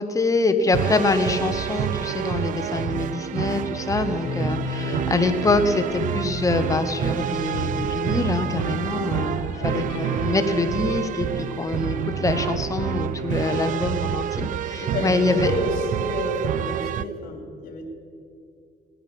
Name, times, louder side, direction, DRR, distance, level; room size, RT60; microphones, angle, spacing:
voice 1, 0.0-15.5, left 3 dB, 20° left, 8 dB, 1.1 m, -25 dB
sound 1, 0.7-17.0, right 11 dB, 50° right, 0.4 m, -28 dB
sound 2, 4.2-14.1, left 7 dB, 90° left, 0.7 m, -38 dB
voice 2, 14.8-17.9, left 2 dB, 60° left, 2 dB, 3.3 m, -30 dB
19.0 x 9.9 x 5.4 m, 2.5 s
cardioid pair, 110°, 17 cm